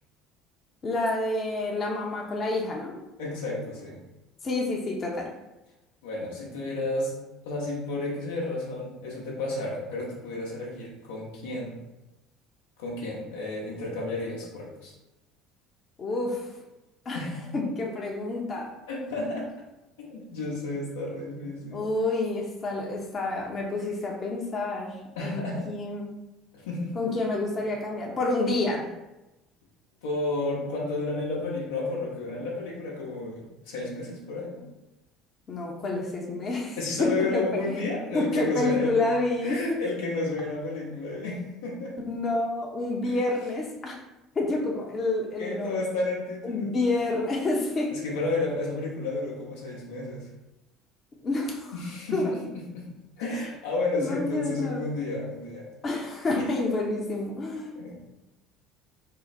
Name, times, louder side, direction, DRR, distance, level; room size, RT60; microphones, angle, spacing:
voice 1, 0.8-3.0 4.4-5.3 16.0-16.5 17.0-17.2 17.5-18.7 21.7-26.2 26.9-28.9 34.5-34.7 35.5-37.8 38.1-39.8 42.1-44.0 44.3-45.8 46.4-47.9 51.2-51.7 52.1-52.3 53.9-54.8 55.8-57.8, left 2 dB, 40° left, -1 dB, 0.8 m, -28 dB
voice 2, 3.2-4.0 6.0-7.1 7.4-11.8 12.8-14.9 17.1-17.5 18.9-19.5 20.0-21.8 25.2-25.7 26.5-27.0 30.0-34.5 36.8-39.0 39.4-42.0 43.1-43.2 45.4-46.7 47.9-50.3 51.7-52.2 52.5-55.7 56.4-56.5 57.7-58.0, left 2 dB, 80° left, -3 dB, 0.9 m, -32 dB
3.8 x 2.1 x 4.1 m, 0.98 s
hypercardioid pair, 65°, 0 cm